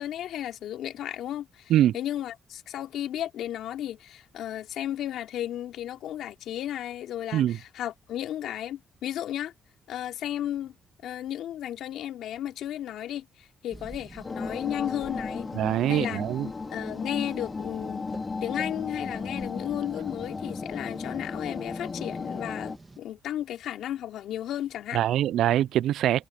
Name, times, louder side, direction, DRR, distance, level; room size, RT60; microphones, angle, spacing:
voice 1, 0.0-9.5 9.9-10.7 11.0-15.5 15.9-16.2 16.7-18.0 18.4-25.0, left 11 dB, 80° left, 3.5 m, -34 dB
sound 1, 13.7-23.0, right 3 dB, 20° right, 2.8 m, -49 dB
sound 2, 14.2-22.8, left 4 dB, 30° left, 4.9 m, -35 dB
voice 2, 15.5-16.5 24.9-26.3, right 12 dB, 80° right, 0.3 m, -23 dB
cardioid pair, 90°, 0 cm